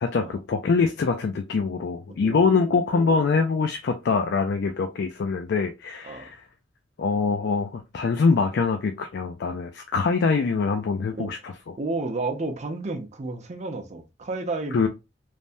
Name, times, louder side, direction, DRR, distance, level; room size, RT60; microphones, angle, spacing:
voice 1, 0.0-6.4 7.0-11.5 14.7-14.9, left 4 dB, 65° left, 0.4 m, -24 dB
voice 2, 2.1-3.5 6.0-6.2 11.2-11.3 11.8-14.9, right 3 dB, 40° right, 0.6 m, -32 dB
3.3 x 2.1 x 2.6 m
head